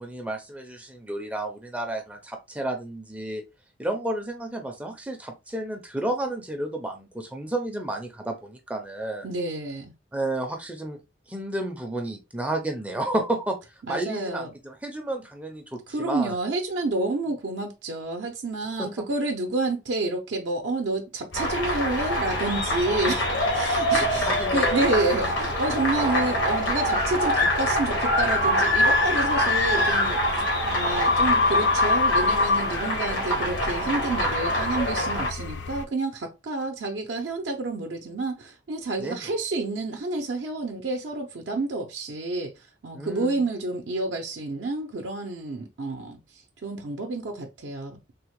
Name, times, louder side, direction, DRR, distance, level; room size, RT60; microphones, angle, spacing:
voice 1, 0.0-3.4 3.8-9.3 10.1-11.0 11.3-13.6 13.9-16.3 18.8-18.9 24.1-24.8 25.9-26.3 39.0-39.2 42.9-43.4, right 1 dB, 10° right, 0.4 m, -31 dB
voice 2, 9.2-9.9 13.8-14.5 15.9-30.2 30.7-48.0, right 2 dB, 65° right, 0.5 m, -29 dB
sound 1, 21.3-35.3, left 1 dB, 85° left, 1.2 m, -25 dB
sound 2, 21.3-35.8, left 4 dB, 65° left, 0.5 m, -30 dB
3.4 x 2.1 x 3.0 m
head